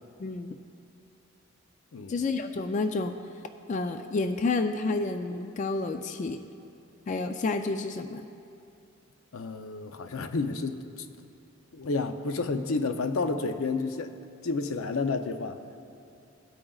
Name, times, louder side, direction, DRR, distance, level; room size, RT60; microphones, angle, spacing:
voice 1, 0.2-0.6 2.1-3.2 3.7-6.5 7.1-8.3, left 3 dB, 35° left, 0.3 m, -30 dB
voice 2, 9.3-11.1 11.7-14.1 14.4-15.6, left 3 dB, 85° left, 0.6 m, -30 dB
17.5 x 8.7 x 2.3 m
head